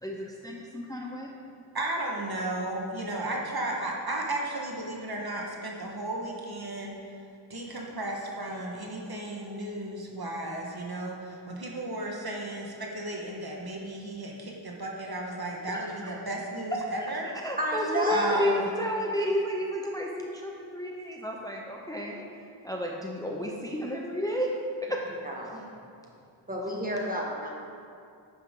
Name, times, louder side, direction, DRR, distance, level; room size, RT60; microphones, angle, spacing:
voice 1, 0.0-1.3 15.7-16.2 16.7-17.1 17.4-22.2 22.6-24.5 24.8-25.0, left 1 dB, 10° left, -1 dB, 0.8 m, -32 dB
voice 2, 1.7-7.0 7.5-17.3 18.1-18.7, right 1 dB, 50° right, -1 dB, 1.6 m, -34 dB
voice 3, 17.6-18.6 25.2-25.6 26.5-27.5, right 1 dB, 20° right, -2 dB, 1.9 m, -30 dB
10.5 x 8.9 x 3.9 m, 2.4 s
wide cardioid pair, 80°, 46 cm